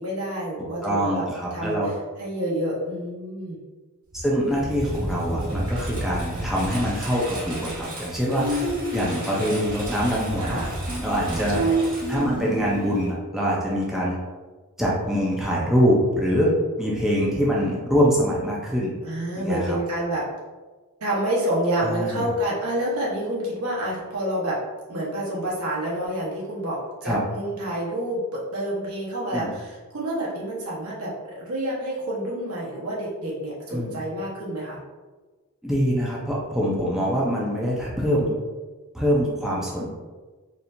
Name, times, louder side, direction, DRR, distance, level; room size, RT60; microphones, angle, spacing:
voice 1, 0.0-1.2 1.5-1.8 2.2-3.6 8.9-9.2 10.4-10.8 11.3-11.8 19.0-20.3 21.0-24.6 24.9-34.8, right 1 dB, 80° right, -5 dB, 1.1 m, -28 dB
voice 2, 0.8-1.9 4.1-10.6 11.0-11.6 12.1-14.2 14.8-16.5 16.8-18.9 19.4-19.8 21.8-22.3 27.0-27.2 29.3-29.5 33.7-34.0 35.6-38.3 38.9-39.9, equal, ahead, -5 dB, 0.6 m, -24 dB
Engine, 4.1-12.9, right 1 dB, 60° right, 1.1 m, -33 dB
sound 1, 8.4-9.6 10.9-13.1, right 2 dB, 40° right, 0.8 m, -28 dB
4.3 x 2.6 x 2.6 m, 1.3 s
head